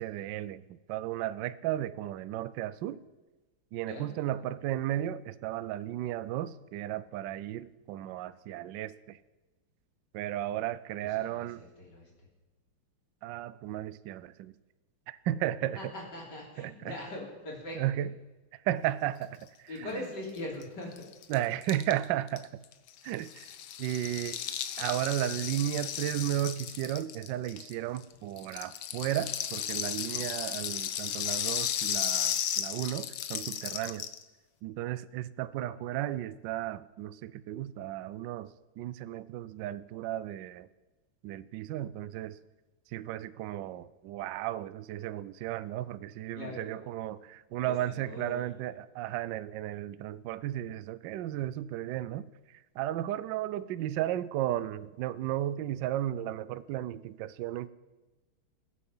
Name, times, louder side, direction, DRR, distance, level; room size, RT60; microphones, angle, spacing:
voice 1, 0.0-3.0 3.7-9.2 10.1-11.6 13.2-14.5 15.1-15.9 16.6-16.9 17.7-18.1 18.5-20.0 21.3-22.5 23.0-24.4 24.8-34.1 34.6-40.7 41.2-42.4 42.9-57.7, right 13 dB, 75° right, 17 dB, 1.1 m, -34 dB
voice 2, 11.3-12.0 15.7-17.8 19.7-20.9 46.3-46.6 47.6-48.5, left 1 dB, 50° left, -2 dB, 4.2 m, -41 dB
Rattle (instrument), 20.4-20.5 20.6-20.7 20.9-28.0 28.4-34.2, left 10 dB, 70° left, 1.6 m, -34 dB
21.5 x 8.5 x 5.5 m, 1.1 s
omnidirectional pair, 2.4 m